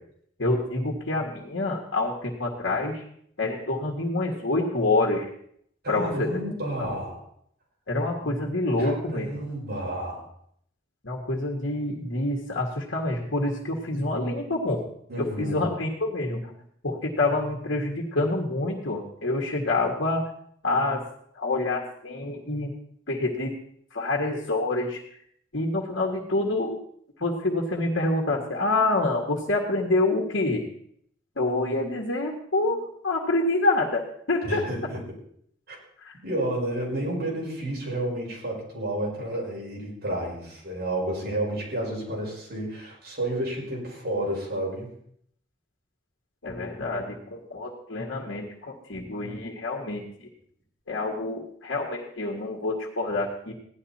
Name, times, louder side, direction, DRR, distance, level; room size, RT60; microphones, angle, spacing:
voice 1, 0.4-3.0 3.4-5.3 5.9-6.3 6.8-7.0 7.9-9.3 11.0-14.8 15.2-16.4 16.8-20.2 20.6-21.0 21.4-22.7 23.1-23.5 23.9-25.0 25.5-26.8 27.2-30.6 31.4-34.6 36.0-36.1 46.4-50.0 50.9-53.5, left 2 dB, 70° left, -1 dB, 1.8 m, -27 dB
voice 2, 5.8-7.2 8.8-10.3 15.1-15.7 34.4-35.0 35.7-35.8 36.2-44.9, right 1 dB, 55° right, -3 dB, 5.4 m, -31 dB
16.5 x 11.5 x 4.3 m, 0.68 s
head